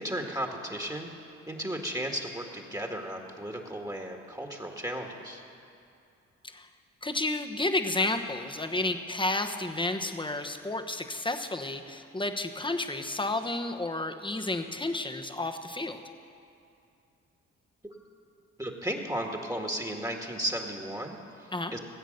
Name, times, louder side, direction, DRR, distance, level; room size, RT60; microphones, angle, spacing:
voice 1, 0.0-5.4 18.6-21.8, equal, 10° right, 2 dB, 1.7 m, -35 dB
voice 2, 7.0-16.0 21.5-21.7, left 2 dB, 15° left, 6 dB, 1.1 m, -31 dB
17.5 x 8.0 x 6.6 m, 2.5 s
supercardioid pair, 45°, 33 cm